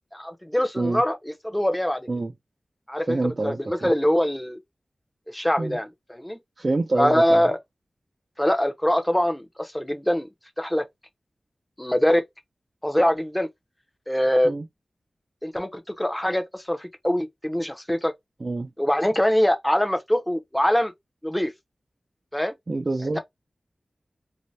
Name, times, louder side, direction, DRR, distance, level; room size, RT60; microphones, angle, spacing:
voice 1, 0.2-2.1 2.9-4.6 5.3-6.4 7.0-7.6 8.4-10.3 10.6-10.8 11.8-12.2 12.8-13.5 14.1-14.6 15.4-18.1 18.8-20.9 21.2-21.5 22.3-22.5, equal, 10° left, 0.6 m, -23 dB
voice 2, 3.1-3.9 5.6-5.8 6.6-7.5 14.4-14.6 18.4-18.7 22.7-23.2, right 2 dB, 45° right, 0.3 m, -27 dB
2.6 x 2.1 x 3.1 m
wide cardioid pair, 85°, 0 cm